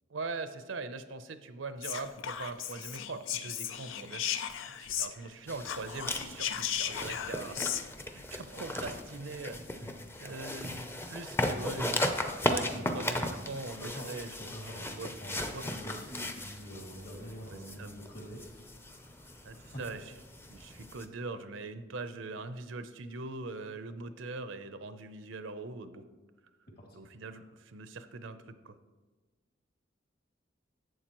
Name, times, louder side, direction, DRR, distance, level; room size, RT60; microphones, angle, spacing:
voice 1, 0.1-7.8 8.1-9.6 10.2-10.8 11.1-12.1 12.4-14.3 15.0-15.1 15.5-15.6 17.5-17.9 19.4-20.0 20.5-26.0 26.9-28.7, right 3 dB, 80° right, 10 dB, 0.6 m, -42 dB
Whispering, 1.8-5.3 5.6-7.8, left 10 dB, 80° left, 0.5 m, -36 dB
sound 1, 5.5-21.0, left 1 dB, 15° left, 0.6 m, -37 dB
voice 2, 13.7-14.1 14.4-19.8 26.7-26.9, equal, 55° left, -1 dB, 2.4 m, -46 dB
11.0 x 8.0 x 3.0 m, 1.3 s
head